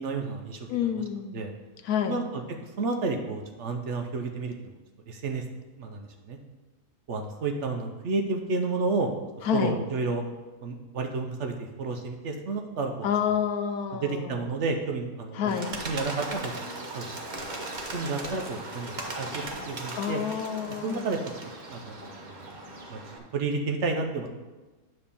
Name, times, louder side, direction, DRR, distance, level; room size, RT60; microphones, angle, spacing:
voice 1, 0.0-0.9 1.3-1.5 2.0-2.4 2.8-4.7 5.1-5.4 5.8-6.4 7.1-9.1 9.5-10.2 10.6-13.1 14.0-15.6 15.8-17.2 17.9-20.2 20.8-21.2 21.6-22.0 22.2-22.4 22.9-23.0 23.3-24.3, right 3 dB, 60° right, 3 dB, 0.9 m, -31 dB
voice 2, 0.7-1.4 1.8-2.2 9.4-9.8 13.0-14.4 15.3-15.8 20.0-21.2, left 8 dB, 80° left, 7 dB, 1.2 m, -29 dB
Bird, 15.5-23.2, right 2 dB, 35° right, 0.9 m, -38 dB
9.6 x 3.3 x 6.9 m, 1.2 s
omnidirectional pair, 1.6 m